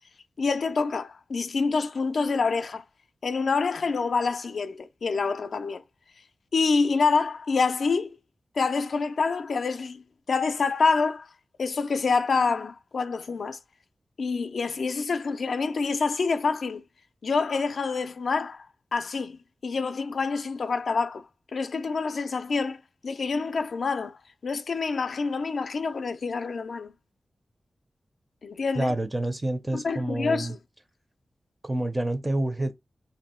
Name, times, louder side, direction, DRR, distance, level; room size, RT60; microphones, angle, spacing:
voice 1, 0.4-2.8 3.2-5.8 6.5-8.2 8.6-11.3 11.6-13.6 14.2-16.8 17.2-18.7 18.9-19.4 19.6-21.3 21.5-22.8 23.0-26.9 28.4-28.9 29.7-30.6, left 4 dB, 65° left, 0.3 m, -27 dB
voice 2, 28.8-30.6 31.6-32.7, right 1 dB, 15° right, 0.4 m, -28 dB
3.0 x 2.6 x 4.2 m
wide cardioid pair, 150°, 0 cm